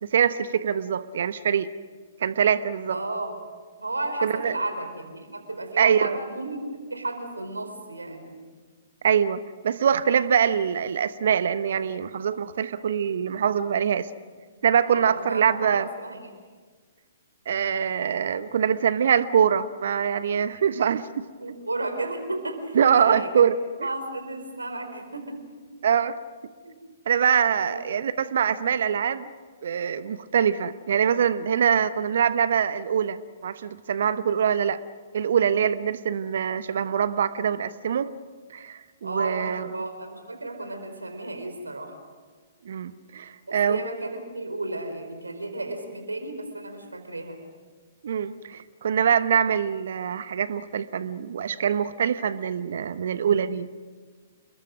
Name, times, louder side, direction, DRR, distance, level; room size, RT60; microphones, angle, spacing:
voice 1, 0.1-1.7 2.2-3.0 4.2-4.5 5.8-6.2 9.0-14.1 14.6-15.9 17.5-21.2 22.7-23.5 23.8-23.9 25.8-26.2 27.1-29.3 29.6-34.8 35.1-38.1 38.5-39.7 42.6-43.8 48.0-53.7, right 8 dB, 60° right, 14 dB, 1.0 m, -24 dB
voice 2, 2.9-3.3 3.8-8.3 14.9-16.3 21.4-23.5 23.8-25.4 26.6-26.8 27.6-27.8 39.0-42.0 43.5-47.4, right 2 dB, 85° right, 6 dB, 4.4 m, -33 dB
29.0 x 21.5 x 6.3 m, 1.5 s
figure-of-eight pair, 120°, 0 cm